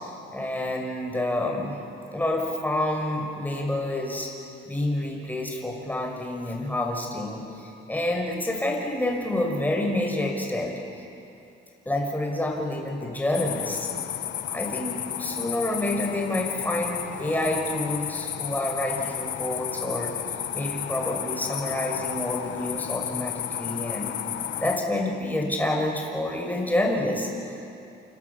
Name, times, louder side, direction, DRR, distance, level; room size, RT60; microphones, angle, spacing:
voice 1, 0.3-1.8 2.1-4.3 4.7-10.8 11.9-13.9 14.5-20.1 20.5-24.2 24.6-27.6, left 1 dB, 10° left, 0 dB, 6.0 m, -28 dB
sound 1, 13.3-24.8, left 10 dB, 70° left, 1.2 m, -32 dB
28.5 x 28.0 x 7.2 m, 2.6 s
cardioid pair, 90°, 20 cm